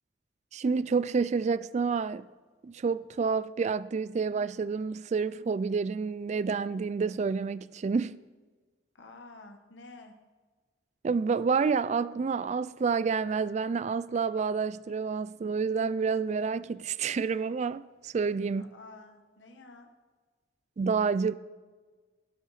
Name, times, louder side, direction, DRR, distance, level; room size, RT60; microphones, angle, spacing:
voice 1, 0.5-2.3 2.6-8.2 11.0-18.7 20.8-21.3, right 5 dB, 40° right, 0.3 m, -29 dB
voice 2, 8.9-10.1 18.6-19.9, left 3 dB, 85° left, 1.3 m, -50 dB
17.5 x 6.7 x 4.9 m
head